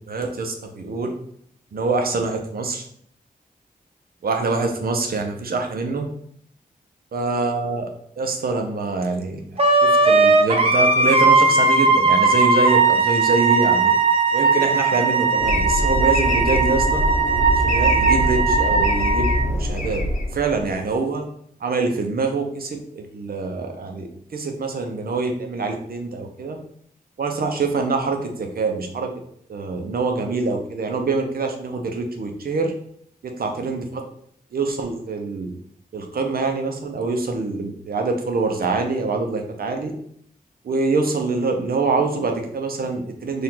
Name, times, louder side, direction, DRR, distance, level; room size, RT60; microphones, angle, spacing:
voice 1, 0.1-1.1 1.7-2.9 4.2-6.1 7.1-7.9 8.2-9.4 9.8-13.9 14.3-17.0 17.5-20.0 20.3-21.2 21.6-26.6 27.2-29.1 29.5-32.7 33.2-34.0 34.5-35.5 35.9-39.9 40.6-43.4, right 3 dB, 75° right, 4 dB, 0.7 m, -25 dB
Wind instrument woodwind instrument, 9.6-19.5, right 3 dB, 40° right, 0.6 m, -18 dB
sound 1, 15.4-20.8, left 1 dB, 55° left, 0.9 m, -23 dB
4.6 x 2.5 x 3.8 m, 0.67 s
wide cardioid pair, 90°, 16 cm